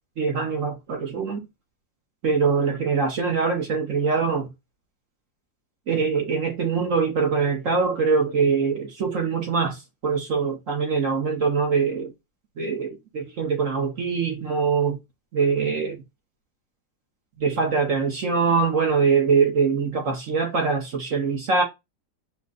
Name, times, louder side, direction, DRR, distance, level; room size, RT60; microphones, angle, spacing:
voice 1, 0.2-1.4 2.2-4.5 5.9-12.1 12.6-15.0 15.3-16.0 17.4-21.6, right 5 dB, 50° right, 1.2 m, -23 dB
5.1 x 2.2 x 3.7 m
omnidirectional pair, 2.0 m